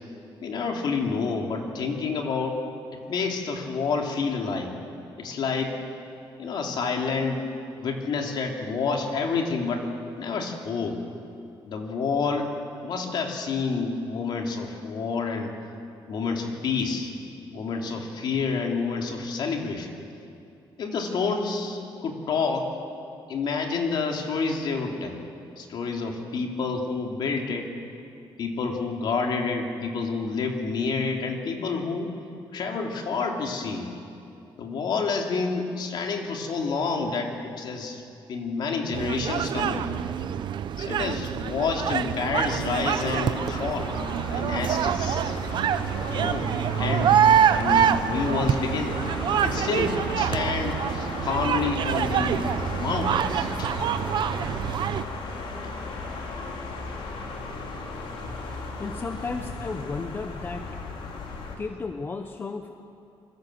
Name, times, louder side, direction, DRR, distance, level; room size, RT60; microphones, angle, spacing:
voice 1, 0.4-2.6 3.1-4.7 5.2-5.8 6.4-7.4 7.8-9.9 10.2-11.0 11.7-12.5 12.8-15.5 16.1-17.1 17.5-20.0 20.8-22.7 23.3-25.2 25.6-27.7 28.4-32.1 32.5-33.9 34.6-38.0 38.3-40.0 40.8-43.9 44.3-45.3 46.1-47.2 47.5-48.9 49.4-52.5 52.8-53.7, left 4 dB, 55° left, 2 dB, 3.1 m, -28 dB
sound 1, 38.9-55.0, right 9 dB, 55° right, 0.8 m, -25 dB
sound 2, 42.6-61.6, left 3 dB, 70° left, 4.0 m, -36 dB
voice 2, 58.8-60.7 61.6-62.7, left 4 dB, 25° left, 6 dB, 0.9 m, -33 dB
27.5 x 22.0 x 7.9 m, 2.6 s
cardioid pair, 175°, 9 cm